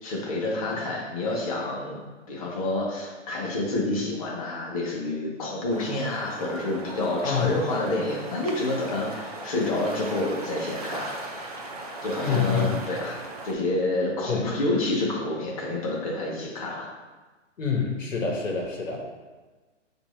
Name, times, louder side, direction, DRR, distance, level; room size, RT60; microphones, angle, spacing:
voice 1, 0.0-2.0 2.3-11.6 12.0-13.2 13.4-16.9, left 2 dB, 30° left, -2 dB, 0.8 m, -28 dB
sound 1, 5.7-13.5, right 2 dB, 35° right, 0.4 m, -38 dB
voice 2, 12.2-12.8 14.3-14.5 17.6-19.0, left 6 dB, 80° left, -1 dB, 1.1 m, -26 dB
5.6 x 2.6 x 3.1 m, 1.3 s
hypercardioid pair, 145°, 38 cm